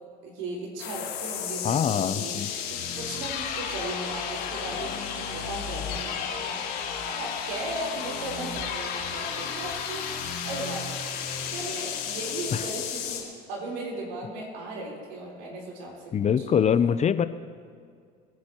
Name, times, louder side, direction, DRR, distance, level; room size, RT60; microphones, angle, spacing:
voice 1, 0.2-2.3 2.7-6.6 7.0-10.8 11.5-13.2 13.5-16.6, right 2 dB, 80° right, -2 dB, 4.1 m, -37 dB
sound 1, 0.8-13.2, left 7 dB, 80° left, 3.4 m, -33 dB
voice 2, 1.6-2.5 12.5-12.6 16.1-17.3, left 8 dB, 35° left, 13 dB, 0.6 m, -23 dB
24.5 x 10.5 x 3.0 m, 2.2 s
supercardioid pair, 80°, 20 cm